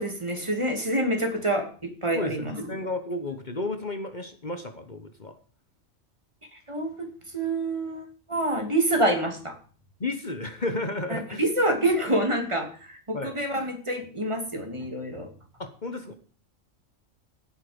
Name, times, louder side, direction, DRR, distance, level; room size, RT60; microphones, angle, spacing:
voice 1, 0.0-2.7 6.5-7.1 7.3-9.5 11.4-15.3, right 1 dB, 20° right, 4 dB, 2.9 m, -27 dB
voice 2, 2.1-5.4 10.0-11.4 13.1-13.3 15.6-16.1, left 2 dB, 35° left, 8 dB, 1.2 m, -32 dB
17.0 x 8.7 x 5.3 m, 0.43 s
omnidirectional pair, 1.4 m